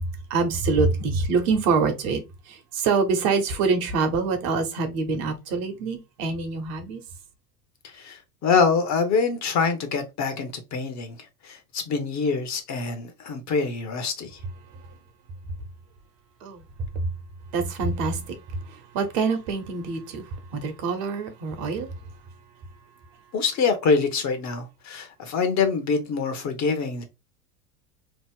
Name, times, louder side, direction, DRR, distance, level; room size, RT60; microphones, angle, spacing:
voice 1, 0.3-2.2 2.5-7.0 16.4-16.6 17.5-21.9, right 4 dB, 50° right, 1.1 m, -25 dB
voice 2, 7.8-11.2 11.4-14.4 23.3-27.0, left 5 dB, 35° left, 0.8 m, -25 dB
3.0 x 2.0 x 3.6 m
hypercardioid pair, 85°, 50 cm